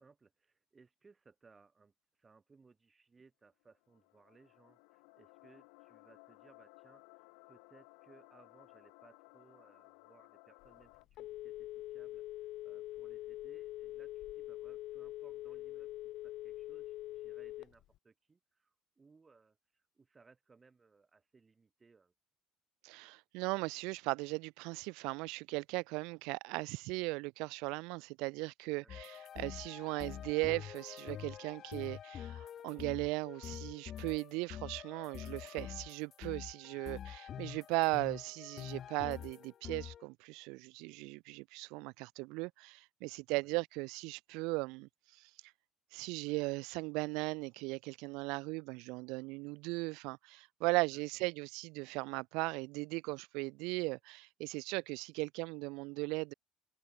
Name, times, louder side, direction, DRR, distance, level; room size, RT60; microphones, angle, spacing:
voice 1, 0.0-1.9 2.2-15.9 16.2-22.1 28.8-29.1 43.4-43.5 50.9-51.0, right 4 dB, 20° right, 3.9 m, -65 dB
sound 1, 3.6-11.1, left 40 dB or more, 90° left, 7.4 m, -60 dB
Telephone, 10.6-18.0, left 15 dB, 65° left, 1.1 m, -44 dB
voice 2, 22.8-44.9 45.2-45.3 45.9-56.3, right 26 dB, 80° right, 0.6 m, -38 dB
sound 2, 28.9-40.1, left 9 dB, 45° left, 0.7 m, -46 dB
cardioid pair, 110°, 0 cm